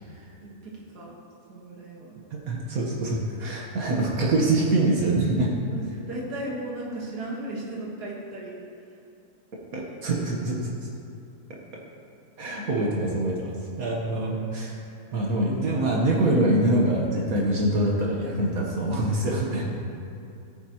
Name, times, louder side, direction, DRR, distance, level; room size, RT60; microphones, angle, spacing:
voice 1, 0.4-1.1 1.5-2.2 5.7-8.6, right 1 dB, 85° right, -4 dB, 2.1 m, -36 dB
voice 2, 2.3-5.5 9.7-10.7 12.4-14.8 15.1-19.6, right 1 dB, 65° right, -2 dB, 1.6 m, -24 dB
13.5 x 9.5 x 3.0 m, 2.7 s
omnidirectional pair, 1.7 m